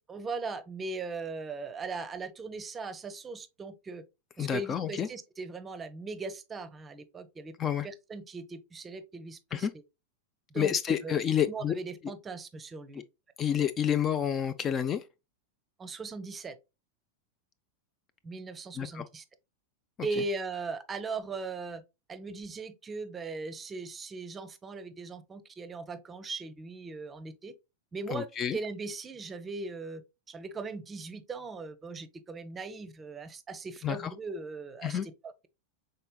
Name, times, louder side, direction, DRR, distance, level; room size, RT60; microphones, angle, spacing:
voice 1, 0.1-4.0 4.4-7.5 7.8-9.7 10.5-13.0 15.8-16.6 18.2-19.2 20.0-21.8 22.1-27.5 27.9-30.0 30.3-35.5, right 3 dB, 20° right, 0.6 m, -39 dB
voice 2, 4.4-5.1 7.6-7.9 9.5-9.7 10.5-11.7 13.4-15.0 18.8-19.1 28.1-28.6 33.8-34.1 34.8-35.1, left 9 dB, 25° left, 0.4 m, -29 dB
5.5 x 3.9 x 2.2 m
figure-of-eight pair, 90°, 0 cm